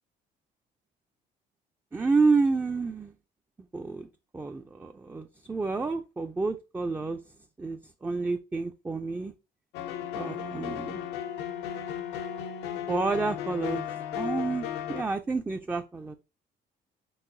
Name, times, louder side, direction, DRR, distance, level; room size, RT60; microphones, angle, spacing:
voice 1, 1.9-3.2 3.7-4.1 4.3-7.2 7.6-9.3 10.1-11.0 12.9-13.8 14.2-16.2, right 4 dB, 10° right, 0.3 m, -29 dB
sound 1, 9.7-15.0, left 10 dB, 90° left, 0.6 m, -35 dB
4.7 x 3.8 x 2.6 m
cardioid pair, 110°, 17 cm